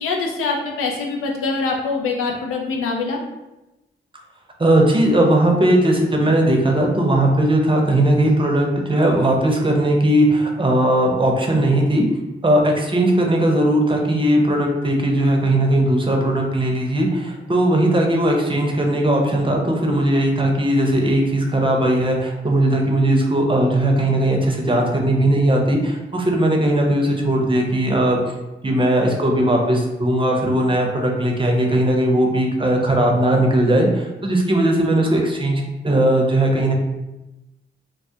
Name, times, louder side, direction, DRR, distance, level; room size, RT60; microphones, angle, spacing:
voice 1, 0.0-3.2, left 4 dB, 90° left, 0 dB, 0.4 m, -24 dB
voice 2, 4.6-12.1 12.4-28.3 28.6-36.7, right 1 dB, 25° right, 1 dB, 0.6 m, -18 dB
2.2 x 2.1 x 2.7 m, 0.99 s
supercardioid pair, 45°, 21 cm